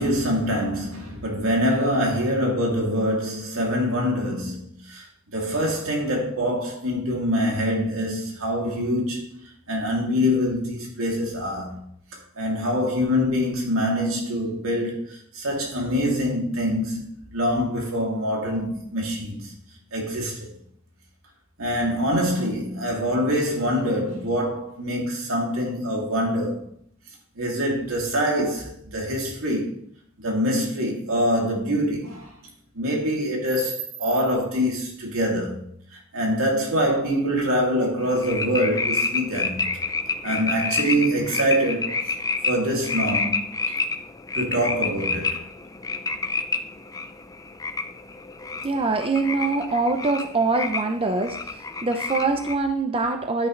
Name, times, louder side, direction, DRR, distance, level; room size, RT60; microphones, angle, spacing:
voice 1, 0.0-5.0 5.3-11.8 12.4-19.5 19.9-20.5 21.6-26.6 27.4-29.8 30.2-32.3 32.7-35.7 36.1-39.6 40.2-42.0 42.5-43.4 44.3-45.4, equal, 75° right, 2.9 m, -24 dB
sound 1, 38.0-52.5, left 4 dB, 15° left, 0.5 m, -29 dB
voice 2, 48.6-53.5, right 3 dB, 25° right, 0.6 m, -24 dB
10.5 x 9.7 x 3.3 m
head